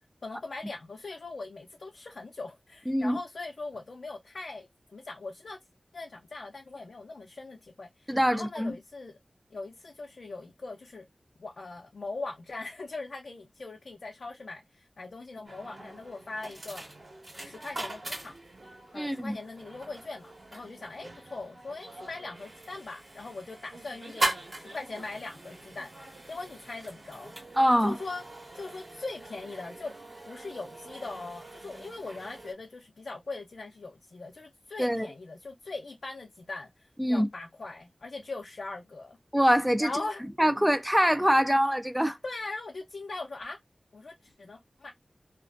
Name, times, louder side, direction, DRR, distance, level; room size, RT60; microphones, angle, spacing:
voice 1, 0.2-5.6 5.9-9.1 9.5-11.1 11.4-16.8 17.4-18.3 18.9-27.3 27.8-28.2 28.5-30.0 30.2-39.2 39.8-40.2 42.2-43.6 43.9-44.9, left 3 dB, 75° left, 0.5 m, -40 dB
voice 2, 2.9-3.2 8.1-8.7 18.9-19.4 27.6-28.0 34.8-35.1 37.0-37.3 39.3-39.9 40.4-42.2, equal, 5° right, 0.4 m, -24 dB
sound 1, 15.5-32.5, right 1 dB, 45° right, 1.2 m, -41 dB
2.4 x 2.2 x 2.4 m
wide cardioid pair, 85°, 0 cm